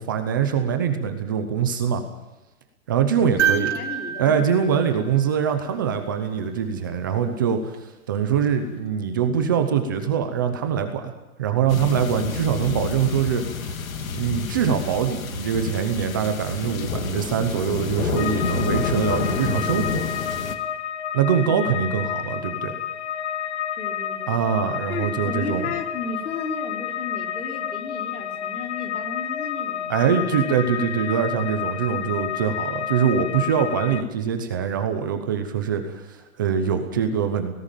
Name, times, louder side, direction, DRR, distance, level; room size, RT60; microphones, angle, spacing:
voice 1, 0.0-2.0 2.9-3.7 4.2-11.1 11.4-13.4 14.1-20.1 21.1-22.7 24.3-25.7 29.9-37.5, right 7 dB, 15° right, 7 dB, 0.7 m, -23 dB
voice 2, 3.4-4.8 6.2-6.6 21.4-21.9 23.8-24.4 24.9-30.0, left 4 dB, 90° left, 3 dB, 4.7 m, -34 dB
sound 1, 3.4-5.7 7.7-7.8, right 9 dB, 55° right, 3.8 m, -27 dB
sound 2, 11.7-20.5, left 5 dB, 70° left, 2.4 m, -29 dB
sound 3, 18.2-34.0, left 9 dB, 50° left, 0.9 m, -30 dB
18.0 x 16.5 x 9.0 m, 1.0 s
hypercardioid pair, 180°, 42 cm